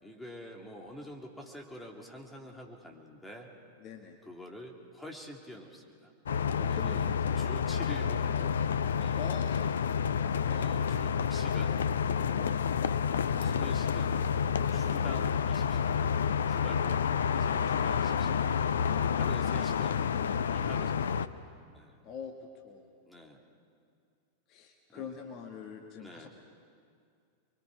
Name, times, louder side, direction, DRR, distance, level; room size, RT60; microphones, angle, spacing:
voice 1, 0.0-3.5 4.2-6.1 6.7-8.6 9.0-9.2 10.5-11.8 13.4-14.3 14.7-16.0 16.5-17.0 17.3-18.5 19.1-21.5 21.7-22.0 23.1-23.4 24.9-25.2 26.0-26.3, equal, 5° left, 0 dB, 2.7 m, -47 dB
voice 2, 3.8-4.2 6.6-7.6 9.1-9.7 10.4-10.6 13.0-13.4 17.7-17.9 22.0-22.9 24.5-26.3, left 6 dB, 35° left, 3 dB, 1.6 m, -45 dB
sound 1, 6.3-21.3, left 7 dB, 65° left, 0.6 m, -29 dB
29.0 x 22.5 x 4.8 m, 2.3 s
figure-of-eight pair, 90°, 0 cm